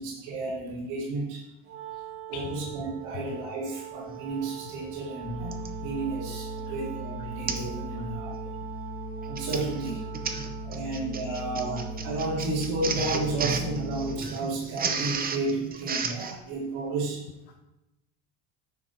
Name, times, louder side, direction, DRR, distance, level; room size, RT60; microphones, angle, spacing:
voice 1, 0.0-1.4 2.3-8.4 9.3-10.0 10.6-17.2, right 2 dB, 85° right, -6 dB, 2.9 m, -32 dB
Wind instrument woodwind instrument, 1.6-10.9, right 11 dB, 45° right, 1.4 m, -43 dB
voice 2, 1.9-2.7 3.1-3.4 4.6-4.8 5.8-5.9 6.6-6.8 7.9-8.1 8.6-8.7 10.1-10.9 11.2-11.4 17.5-17.6, left 8 dB, 65° left, 1 dB, 1.1 m, -46 dB
Printer, 4.3-4.4 5.5-5.8 6.4-6.6 6.9-7.0 7.5-7.7 8.1-8.3 9.1-16.4, right 5 dB, 20° right, 0.7 m, -33 dB
sound 1, 5.2-14.2, equal, ahead, 1.6 m, -38 dB
10.0 x 6.2 x 4.4 m, 0.90 s
cardioid pair, 150°, 42 cm